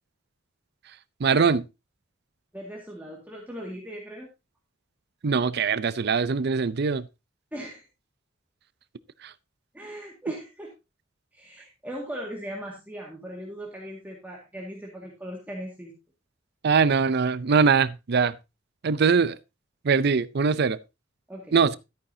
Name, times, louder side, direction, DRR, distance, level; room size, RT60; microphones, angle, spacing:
voice 1, 1.2-1.6 5.2-7.1 9.2-9.3 16.6-18.4 18.8-19.4 19.8-20.8 21.5-21.8, right 5 dB, 55° right, 0.5 m, -22 dB
voice 2, 2.5-4.3 7.5-7.8 9.7-10.7 11.3-16.0 21.3-21.6, equal, 10° right, 1.9 m, -38 dB
13.0 x 9.1 x 2.7 m
head